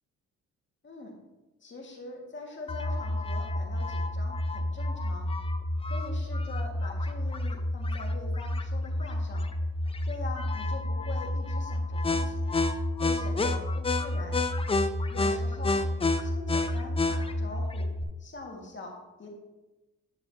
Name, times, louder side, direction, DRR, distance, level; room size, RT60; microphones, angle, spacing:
voice 1, 1.6-5.3 5.9-9.5 10.0-12.4 13.0-14.4 15.1-15.8 16.2-17.9 18.2-19.3, left 2 dB, 40° left, 0 dB, 1.9 m, -43 dB
sound 1, 2.7-18.0, left 2 dB, 20° left, 0.5 m, -29 dB
8.8 x 6.8 x 2.8 m, 1.1 s
cardioid pair, 90°, 30 cm